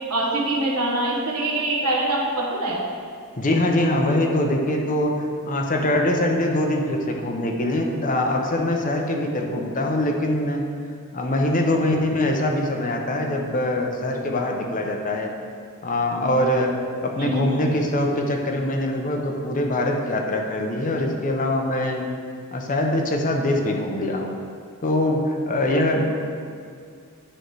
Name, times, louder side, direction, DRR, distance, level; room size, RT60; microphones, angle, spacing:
voice 1, 0.1-2.8 17.2-17.5, right 1 dB, 85° right, -2 dB, 1.2 m, -24 dB
voice 2, 3.4-5.1 5.4-10.6 11.1-15.3 15.8-16.7 17.0-22.0 22.5-24.3 24.8-26.0, left 1 dB, 35° left, 2 dB, 0.6 m, -23 dB
8.9 x 3.2 x 4.7 m, 2.2 s
head